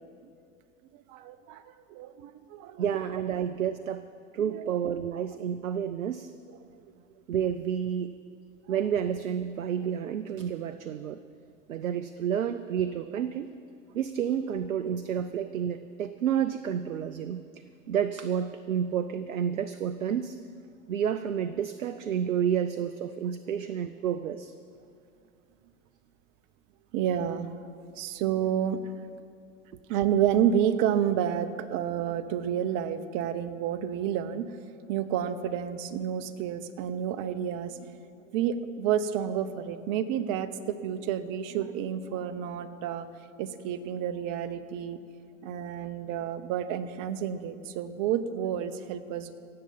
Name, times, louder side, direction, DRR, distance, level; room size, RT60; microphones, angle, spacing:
voice 1, 0.9-2.8 4.5-4.7 6.7-6.8 14.9-15.0 26.9-27.7 28.0-28.8 29.9-38.0 38.3-43.1 43.4-45.0 45.4-49.3, right 9 dB, 50° right, 11 dB, 1.0 m, -30 dB
voice 2, 2.8-4.1 4.3-6.3 7.3-8.1 8.7-11.2 11.7-13.5 13.9-17.4 17.9-20.4 20.9-24.5, right 8 dB, 90° right, 11 dB, 0.6 m, -30 dB
17.0 x 7.8 x 7.2 m, 2.5 s
hypercardioid pair, 90°, 39 cm